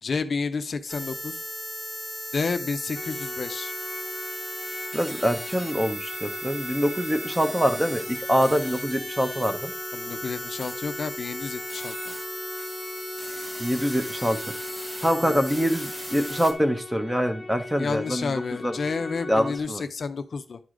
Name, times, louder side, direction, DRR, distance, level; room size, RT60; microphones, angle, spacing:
voice 1, 0.0-1.4 2.3-3.7 9.9-12.1 15.2-15.4 17.8-20.6, left 4 dB, 50° left, 10 dB, 0.5 m, -30 dB
sound 1, 0.9-16.5, equal, 25° right, 1.5 m, -37 dB
sound 2, 2.9-19.6, left 2 dB, 25° left, 0.9 m, -38 dB
voice 2, 4.9-9.7 13.6-14.4 15.0-18.3 18.6-18.7 19.3-19.8, equal, 5° right, 7 dB, 0.7 m, -25 dB
10.5 x 4.8 x 3.7 m, 0.36 s
wide cardioid pair, 175°, 0 cm